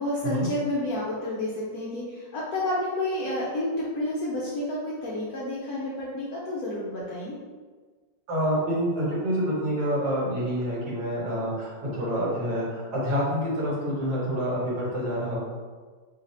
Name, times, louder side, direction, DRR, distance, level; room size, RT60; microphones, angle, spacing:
voice 1, 0.0-7.4, left 1 dB, 70° left, -6 dB, 0.9 m, -30 dB
voice 2, 8.3-15.4, equal, 60° right, -7 dB, 1.5 m, -27 dB
3.2 x 2.4 x 4.1 m, 1.5 s
omnidirectional pair, 2.1 m